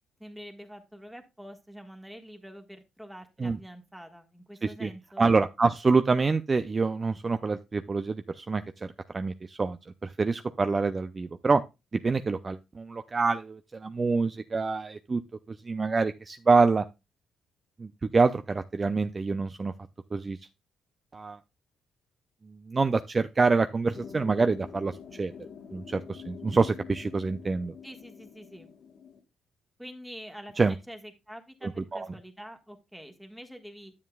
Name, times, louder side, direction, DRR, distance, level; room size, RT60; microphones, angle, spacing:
voice 1, 0.2-5.2 27.8-28.7 29.8-33.9, equal, ahead, 1.5 m, -46 dB
voice 2, 5.2-11.6 12.0-15.2 15.5-16.8 17.8-19.7 20.1-20.4 21.1-21.4 22.5-25.3 25.7-27.7 30.6-30.7 31.9-32.1, right 4 dB, 30° right, 0.4 m, -26 dB
sound 1, 23.9-29.2, left 6 dB, 65° left, 1.3 m, -46 dB
10.5 x 7.4 x 2.3 m
cardioid pair, 90°, 0 cm